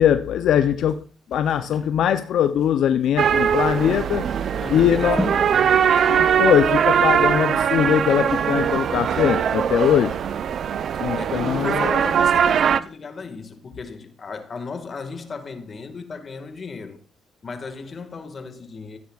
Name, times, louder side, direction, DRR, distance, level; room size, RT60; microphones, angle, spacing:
voice 1, 0.0-4.3 4.7-5.3 6.1-10.2 11.0-12.0, left 9 dB, 75° left, 0.5 m, -21 dB
sound 1, 0.9-9.4 9.7-9.9, left 1 dB, ahead, 3.3 m, -37 dB
sound 2, 3.2-12.8, right 8 dB, 60° right, 0.5 m, -21 dB
voice 2, 4.5-6.3 10.9-17.0 17.4-19.0, left 4 dB, 40° left, 1.7 m, -35 dB
14.5 x 9.4 x 2.4 m
cardioid pair, 90°, 0 cm